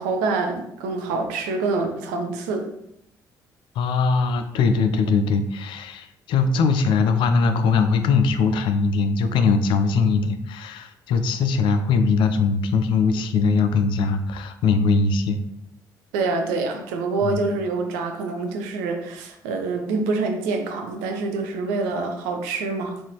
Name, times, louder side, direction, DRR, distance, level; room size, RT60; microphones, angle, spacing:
voice 1, 0.0-2.7 16.1-23.0, right 3 dB, 70° right, 4 dB, 0.5 m, -26 dB
voice 2, 3.8-15.4 17.2-17.4, left 4 dB, 55° left, 8 dB, 0.4 m, -21 dB
3.8 x 2.5 x 2.9 m, 0.78 s
figure-of-eight pair, 45°, 10 cm